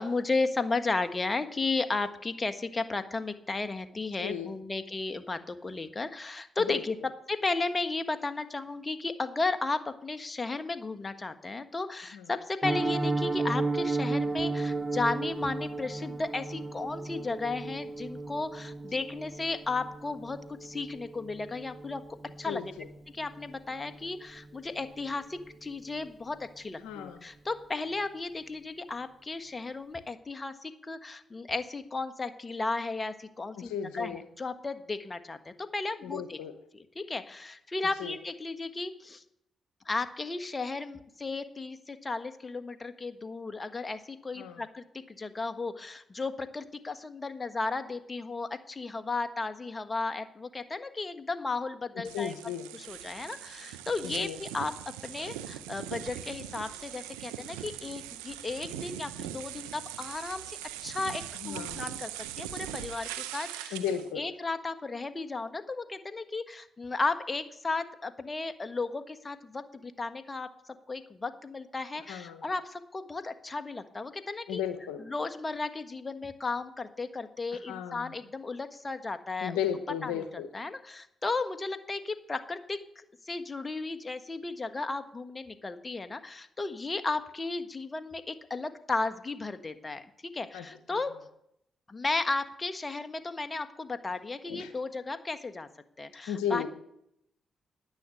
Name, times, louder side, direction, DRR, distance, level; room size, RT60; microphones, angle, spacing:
voice 1, 0.0-7.0 7.3-22.0 22.4-22.6 23.1-36.4 36.7-39.2 39.8-54.8 55.0-60.6 60.8-62.1 62.4-63.8 64.1-70.5 70.9-74.6 75.0-79.6 80.0-91.1 91.9-95.7 96.0-96.7, left 3 dB, 35° left, 10 dB, 1.5 m, -34 dB
voice 2, 4.2-4.5 6.7-6.8 12.1-12.3 22.4-22.9 26.8-27.3 33.6-34.2 36.0-36.5 38.0-38.2 44.4-44.6 52.1-52.7 54.0-54.4 61.4-61.8 63.7-64.2 72.1-72.5 74.5-75.0 77.5-78.1 79.4-80.5 90.5-91.0 94.5-94.7 96.3-96.7, left 8 dB, 85° left, 9 dB, 1.0 m, -35 dB
Piano, 12.6-23.5 23.8-24.0 24.3-24.5 24.8-25.1 25.4-25.5, right 3 dB, 35° right, 1.6 m, -34 dB
sound 1, 52.0-64.1, right 12 dB, 90° right, 0.6 m, -41 dB
10.5 x 9.7 x 7.9 m, 0.75 s
hypercardioid pair, 40°, 0 cm